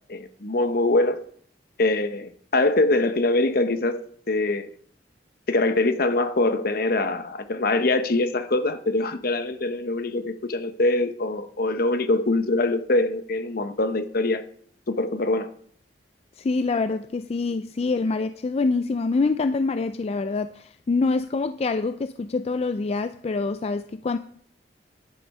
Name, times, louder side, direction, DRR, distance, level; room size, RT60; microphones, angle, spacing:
voice 1, 0.1-1.2 1.8-4.7 5.5-14.4 14.9-15.5, left 2 dB, 55° left, 0.9 m, -23 dB
voice 2, 16.4-24.2, left 3 dB, 35° left, 0.4 m, -25 dB
10.5 x 8.2 x 5.4 m
head